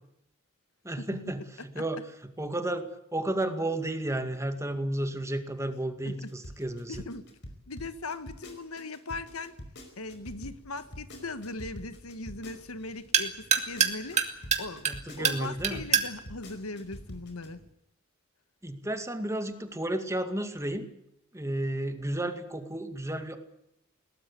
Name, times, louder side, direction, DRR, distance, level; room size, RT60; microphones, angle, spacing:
voice 1, 0.8-2.0 2.4-2.8 3.1-7.0 14.9-15.8 18.6-20.9 21.3-23.4, right 1 dB, 15° right, 8 dB, 2.1 m, -32 dB
sound 1, 6.3-13.0 13.4-17.5, equal, 55° left, 5.0 m, -45 dB
voice 2, 6.9-7.2 7.7-9.6 10.0-14.9 15.2-17.6, left 3 dB, 80° left, 11 dB, 1.6 m, -39 dB
sound 2, 10.1-17.7, right 7 dB, 35° right, 2.5 m, -31 dB
21.5 x 18.5 x 8.4 m, 0.78 s
head